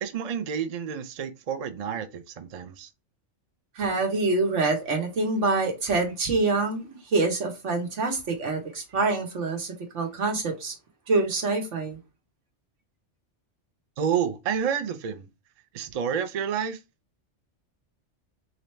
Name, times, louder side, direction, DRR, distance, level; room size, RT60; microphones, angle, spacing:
voice 1, 0.0-2.9 14.0-15.3 15.7-16.8, right 7 dB, 45° right, 0.5 m, -29 dB
voice 2, 3.7-10.7 11.1-12.0, right 3 dB, 90° right, 1.5 m, -26 dB
3.9 x 3.0 x 3.2 m
omnidirectional pair, 1.2 m